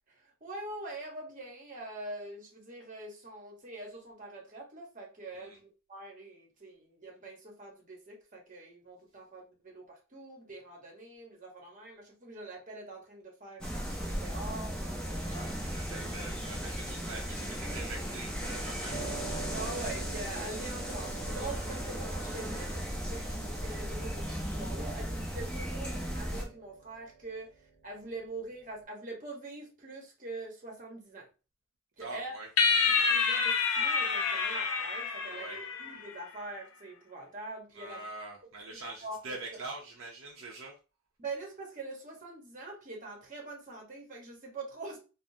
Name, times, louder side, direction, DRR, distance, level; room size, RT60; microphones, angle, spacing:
voice 1, 0.1-15.3 19.5-27.5 27.8-31.3 32.0-32.3 32.9-38.1 38.7-39.2 41.2-45.0, right 2 dB, 40° right, 0.9 m, -44 dB
sound 1, 13.6-26.4, equal, 5° left, 0.5 m, -36 dB
voice 2, 15.2-19.0 20.6-20.7 32.0-32.5 35.2-35.6 37.7-40.8, right 2 dB, 65° right, 0.6 m, -44 dB
Piano, 18.9-28.8, right 4 dB, 35° left, 1.2 m, -47 dB
sound 2, 32.6-36.1, left 5 dB, 80° left, 0.5 m, -28 dB
3.4 x 2.0 x 2.6 m
head